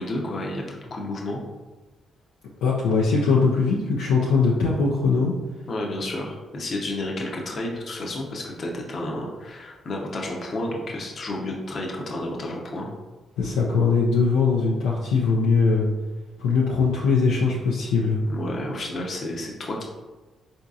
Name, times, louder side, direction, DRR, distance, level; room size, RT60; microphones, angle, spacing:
voice 1, 0.0-1.4 5.7-12.9 18.3-19.8, left 1 dB, 50° left, -1 dB, 0.7 m, -31 dB
voice 2, 2.6-5.3 13.4-15.9 16.4-18.2, left 4 dB, 75° left, -4 dB, 0.4 m, -21 dB
4.4 x 2.7 x 2.4 m, 1.2 s
hypercardioid pair, 45°, 0 cm